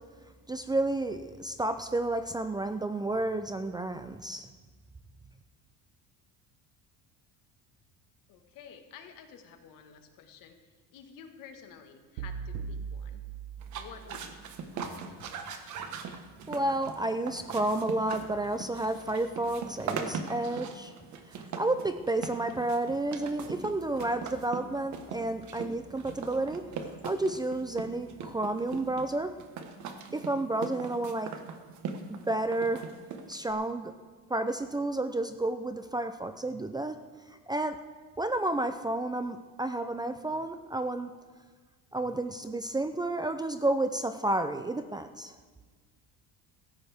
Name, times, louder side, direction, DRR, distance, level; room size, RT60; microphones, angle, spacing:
voice 1, 0.5-4.5 16.5-20.9 21.3-26.6 27.0-29.3 30.1-31.3 32.1-32.9 33.3-33.9 34.3-37.0 37.5-37.8 38.2-41.1 41.9-45.3, right 2 dB, 10° right, 9 dB, 0.5 m, -31 dB
voice 2, 8.3-10.6 10.9-13.2 13.7-14.4 14.8-14.9, left 7 dB, 65° left, 6 dB, 1.7 m, -51 dB
sound 1, 12.2-14.3, right 6 dB, 75° right, 0.9 m, -39 dB
sound 2, 13.6-33.5, right 5 dB, 55° right, 1.5 m, -40 dB
16.5 x 14.5 x 3.5 m, 1.5 s
cardioid pair, 130°, 35 cm